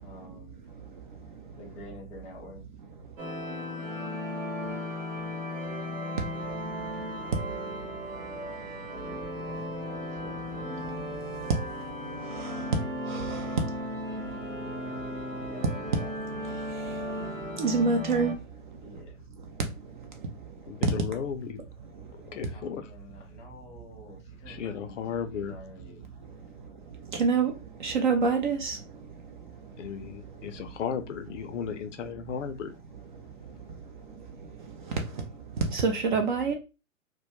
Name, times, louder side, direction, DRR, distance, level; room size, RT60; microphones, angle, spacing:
voice 1, 0.0-0.6 1.5-2.6 4.3-4.6 6.4-6.6 9.4-10.7 15.4-16.5 18.8-19.2 22.3-26.1, left 2 dB, 15° left, 0.7 m, -49 dB
sound 1, 3.2-18.3, left 1 dB, 65° right, 1.0 m, -36 dB
voice 2, 12.2-12.7 13.0-13.6 16.8-17.0 17.6-18.4 20.8-20.9 27.1-27.5 27.8-28.8 34.9-35.2 35.6-36.5, right 4 dB, 40° right, 0.4 m, -26 dB
voice 3, 20.7-21.6 22.3-22.9 24.5-25.6 29.8-32.7, left 7 dB, 65° left, 0.5 m, -35 dB
2.2 x 2.1 x 2.9 m
hypercardioid pair, 125°, 41 cm